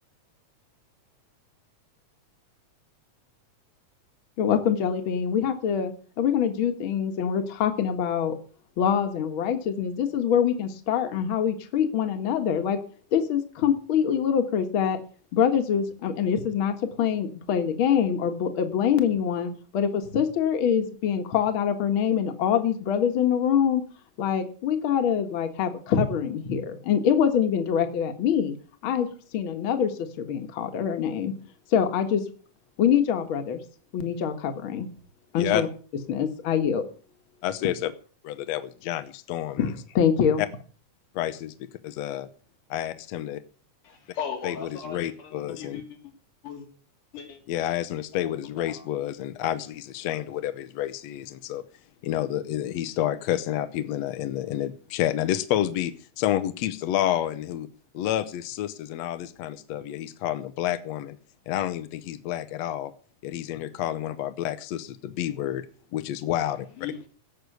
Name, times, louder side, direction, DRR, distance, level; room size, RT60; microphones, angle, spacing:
voice 1, 4.4-8.4 8.8-12.8 13.1-15.0 15.3-23.8 24.2-28.5 28.8-29.1 29.3-31.3 31.7-32.2 32.8-33.6 33.9-34.9 35.3-35.7 36.1-36.9 39.6-40.4, left 8 dB, 50° left, 6 dB, 2.1 m, -24 dB
voice 2, 37.4-37.9 38.2-39.7 40.4-40.5 41.2-41.5 41.8-42.3 42.7-43.4 44.4-45.8 47.5-51.6 52.0-57.7 57.9-61.2 61.5-62.9 63.2-65.7 65.9-66.7, left 12 dB, 70° left, 11 dB, 1.9 m, -29 dB
voice 3, 43.8-46.1 46.4-46.7 47.1-47.4 48.2-48.3 48.6-48.9 66.8-67.1, left 7 dB, 90° left, 3 dB, 4.2 m, -38 dB
17.0 x 6.8 x 8.0 m, 0.41 s
omnidirectional pair, 3.5 m